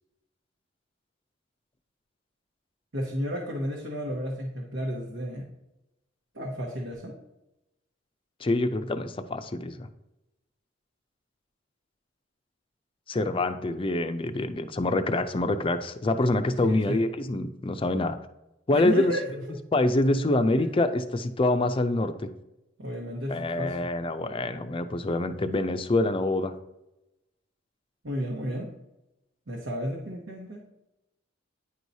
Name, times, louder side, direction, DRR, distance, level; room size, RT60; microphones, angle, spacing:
voice 1, 2.9-5.5 6.3-7.2 16.7-17.0 18.7-19.6 22.8-23.8 28.0-28.7 29.5-30.6, equal, 85° right, -3 dB, 1.2 m, -32 dB
voice 2, 8.4-9.9 13.1-18.2 18.7-19.1 19.7-22.3 23.3-26.5, left 2 dB, 30° left, 9 dB, 0.4 m, -26 dB
9.8 x 4.7 x 2.7 m, 0.92 s
head